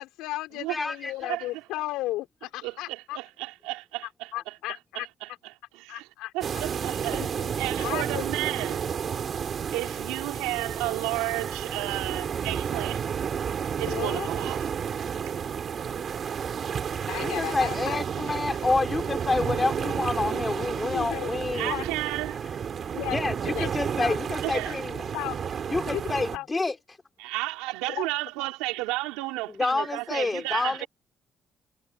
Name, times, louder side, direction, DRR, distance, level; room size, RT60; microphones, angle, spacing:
voice 1, 0.0-3.2 4.3-5.1 5.9-6.3 7.1-7.5 7.8-8.2 13.9-14.3 16.0-16.1 17.1-18.0 20.9-21.8 22.9-24.2 25.1-25.4 25.9-26.5 27.9-28.1, left 17 dB, 80° left, 4.2 m, -35 dB
voice 2, 0.7-1.3 17.2-21.7 23.1-25.0 25.7-26.7 29.6-30.9, left 3 dB, 25° left, 4.5 m, -28 dB
voice 3, 1.3-1.6 2.6-4.6 4.9-6.1 6.3-7.2 7.6-8.9 9.7-13.0 13.8-14.7 15.2-15.4 21.5-22.4 24.4-24.8 27.2-30.9, right 20 dB, 85° right, 2.5 m, -33 dB
sound 1, 6.4-26.4, right 7 dB, 55° right, 3.2 m, -31 dB
supercardioid pair, 55°, 0 cm